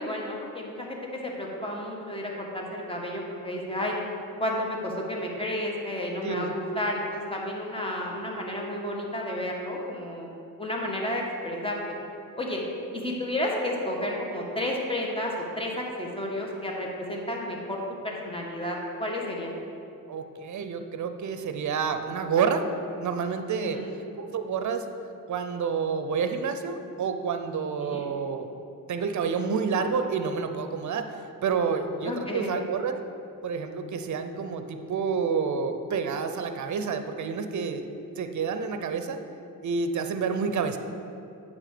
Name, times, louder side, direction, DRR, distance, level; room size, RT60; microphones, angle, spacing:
voice 1, 0.0-3.9 4.4-10.3 10.6-11.8 12.4-12.6 12.9-19.5 23.6-23.9 27.8-28.1 32.0-32.5, left 1 dB, 15° left, -1 dB, 1.5 m, -31 dB
voice 2, 6.2-6.5 20.1-22.6 23.0-23.8 24.2-24.9 25.3-28.5 28.9-31.2 31.4-33.0 33.4-37.9 38.2-39.2 39.6-40.8, right 6 dB, 55° right, 8 dB, 0.7 m, -29 dB
8.9 x 3.6 x 6.7 m, 2.8 s
cardioid pair, 70°, 35 cm